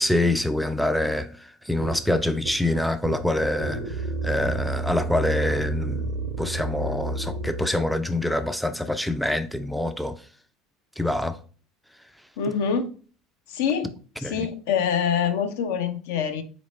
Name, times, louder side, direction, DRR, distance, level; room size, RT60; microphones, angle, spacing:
voice 1, 0.0-6.1 6.4-10.2 11.0-11.4 14.2-14.5, left 1 dB, ahead, 0.3 m, -25 dB
sound 1, 1.8-7.7, right 3 dB, 55° right, 0.5 m, -30 dB
voice 2, 12.4-12.9 13.5-13.9 14.2-16.4, left 7 dB, 60° left, 0.5 m, -25 dB
4.2 x 3.0 x 3.9 m
figure-of-eight pair, 70°, 0 cm